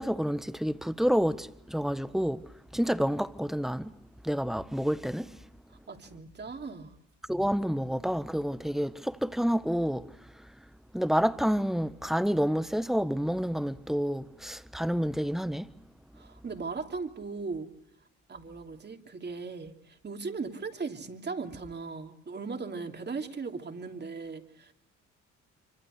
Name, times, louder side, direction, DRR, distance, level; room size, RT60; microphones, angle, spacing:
voice 1, 0.0-2.4 2.7-3.9 4.2-5.3 7.3-10.0 10.9-15.7, equal, ahead, 1.3 m, -29 dB
voice 2, 5.7-7.0 16.2-17.7 18.3-24.7, right 4 dB, 35° right, 3.0 m, -38 dB
25.0 x 25.0 x 6.5 m
cardioid pair, 90°, 30 cm